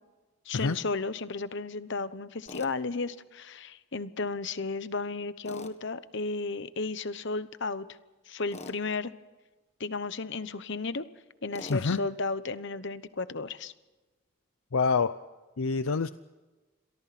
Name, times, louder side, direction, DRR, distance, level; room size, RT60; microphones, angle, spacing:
voice 1, 0.4-7.9 8.3-9.1 9.8-11.1 11.4-13.7, left 3 dB, 55° left, 13 dB, 1.1 m, -34 dB
Tools, 2.5-2.7 5.4-5.8 8.5-8.8 11.5-11.8, left 2 dB, 30° left, 1.6 m, -43 dB
voice 2, 14.7-15.2 15.6-16.1, left 4 dB, 75° left, 12 dB, 0.6 m, -26 dB
28.5 x 23.0 x 4.3 m, 1.2 s
head